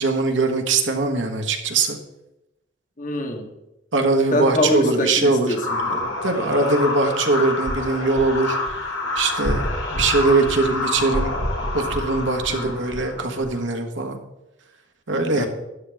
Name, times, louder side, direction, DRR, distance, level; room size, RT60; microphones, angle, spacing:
voice 1, 0.0-2.0 3.9-5.5 6.2-8.6 9.1-11.3 11.7-14.2 15.1-15.5, right 3 dB, 75° right, 4 dB, 1.4 m, -21 dB
voice 2, 3.0-3.5 4.3-6.2 6.4-6.7 12.5-12.8 15.3-15.5, left 1 dB, 45° left, 3 dB, 1.5 m, -25 dB
sound 1, 5.5-13.6, left 2 dB, 85° left, 1.8 m, -27 dB
13.0 x 10.0 x 3.5 m, 0.93 s
head